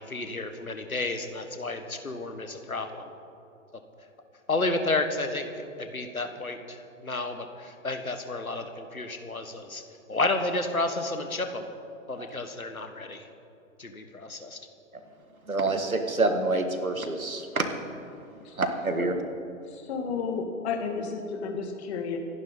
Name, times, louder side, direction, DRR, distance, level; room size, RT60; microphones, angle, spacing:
voice 1, 0.0-3.1 4.5-9.8 10.1-11.7 12.1-13.3 13.8-14.6, left 2 dB, 90° left, 6 dB, 1.7 m, -31 dB
voice 2, 15.5-17.7 18.6-19.2, right 2 dB, 85° right, 6 dB, 1.9 m, -27 dB
voice 3, 19.7-22.2, left 5 dB, 50° left, 3 dB, 2.4 m, -32 dB
27.0 x 11.0 x 4.1 m, 2.8 s
figure-of-eight pair, 115°, 41 cm